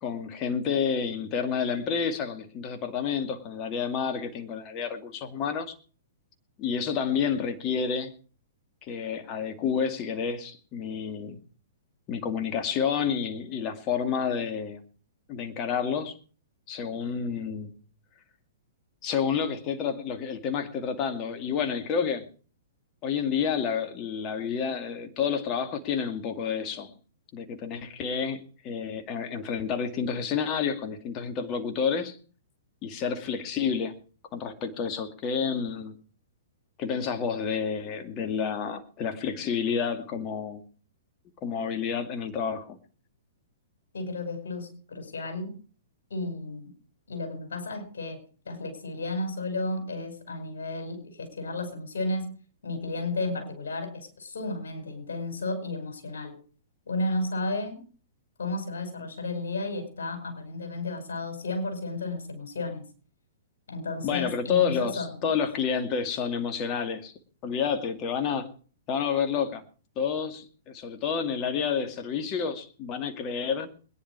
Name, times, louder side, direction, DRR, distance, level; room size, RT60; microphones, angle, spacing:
voice 1, 0.0-5.7 6.6-8.1 8.8-11.4 12.1-14.8 15.3-16.2 16.7-17.7 19.0-22.2 23.0-26.9 27.3-32.2 32.8-33.9 34.3-36.0 36.8-40.6 41.4-42.8 64.0-67.1 67.4-68.5 68.9-69.6 70.0-73.7, left 6 dB, 35° left, 2.4 m, -29 dB
voice 2, 43.9-45.6 46.1-46.7 47.1-52.3 52.6-56.4 56.9-57.8 58.4-62.9 63.7-65.3, left 2 dB, 75° left, 5.6 m, -33 dB
22.0 x 10.5 x 4.8 m
hypercardioid pair, 120°, 0 cm